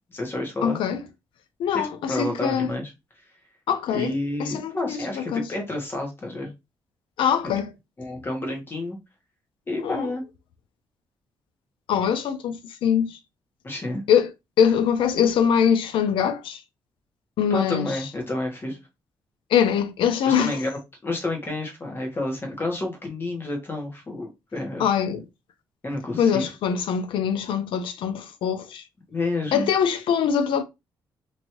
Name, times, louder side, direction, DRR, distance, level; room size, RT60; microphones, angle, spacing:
voice 1, 0.1-0.8 1.7-2.9 3.9-6.5 8.0-9.0 9.7-10.2 13.6-14.0 17.5-18.8 20.2-24.9 25.8-26.5 29.1-29.7, left 2 dB, 25° left, 1.2 m, -30 dB
voice 2, 0.6-1.0 1.6-1.9 2.2-2.7 3.7-4.1 4.4-5.5 7.2-7.7 9.8-10.1 11.9-13.2 14.1-14.3 14.6-16.6 17.4-17.9 19.5-20.6 24.8-25.2 26.2-28.8 29.5-30.6, left 8 dB, 90° left, 0.5 m, -23 dB
3.0 x 2.7 x 2.9 m
cardioid pair, 125°, 8 cm